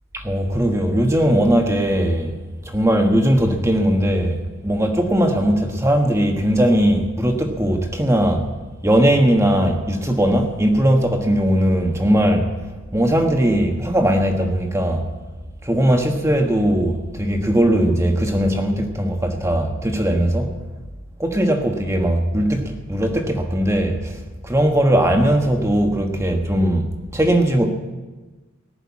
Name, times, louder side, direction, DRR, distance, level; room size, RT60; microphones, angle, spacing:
voice 1, 0.1-2.4 2.6-8.5 8.8-12.5 12.9-15.1 15.6-20.5 21.2-27.7, right 1 dB, 15° right, 1.4 m, -19 dB
19.0 x 6.7 x 8.7 m
head